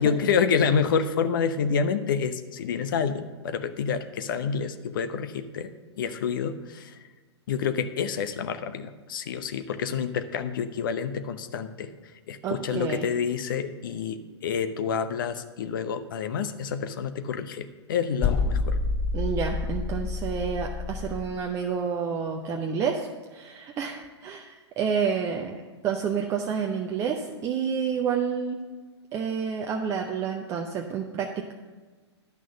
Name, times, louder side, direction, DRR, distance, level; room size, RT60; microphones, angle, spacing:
voice 1, 0.0-5.7 6.0-6.9 7.5-11.9 12.3-18.8, left 6 dB, 50° left, 10 dB, 0.8 m, -28 dB
voice 2, 12.4-13.1 19.1-28.6 29.1-31.5, right 6 dB, 20° right, 2 dB, 0.6 m, -29 dB
sound 1, 18.2-21.3, left 4 dB, 15° left, 0.9 m, -28 dB
10.5 x 6.2 x 6.7 m, 1.3 s
figure-of-eight pair, 115°, 15 cm